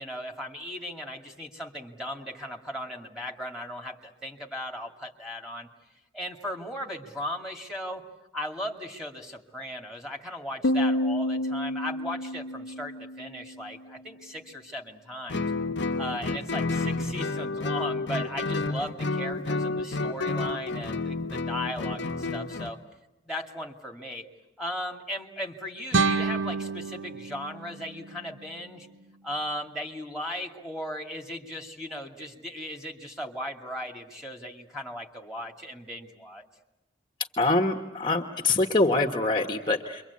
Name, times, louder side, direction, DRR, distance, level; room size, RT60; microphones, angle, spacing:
voice 1, 0.0-5.7 6.1-8.0 8.3-15.5 16.0-22.8 23.2-24.3 24.6-28.9 29.2-36.4, left 1 dB, 5° right, 1 dB, 2.4 m, -37 dB
Piano, 10.6-14.1, left 1 dB, 90° left, 1.0 m, -29 dB
Guitar, 15.3-22.8, left 3 dB, 60° left, 0.9 m, -30 dB
sound 1, 25.9-28.9, right 4 dB, 70° right, 1.1 m, -29 dB
voice 2, 37.4-40.0, left 2 dB, 25° left, 3 dB, 1.1 m, -24 dB
28.5 x 24.0 x 8.4 m, 1.0 s
head